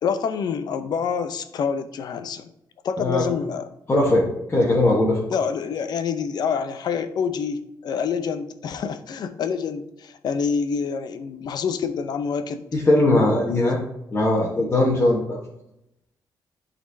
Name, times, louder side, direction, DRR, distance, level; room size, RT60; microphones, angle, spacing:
voice 1, 0.0-2.5 2.8-3.7 5.3-12.6 13.7-13.8, left 6 dB, 60° left, 10 dB, 0.7 m, -27 dB
voice 2, 3.9-5.2 12.7-13.8 14.1-15.4, left 2 dB, 30° left, -5 dB, 1.3 m, -20 dB
11.0 x 4.2 x 2.7 m, 0.82 s
cardioid pair, 145°, 8 cm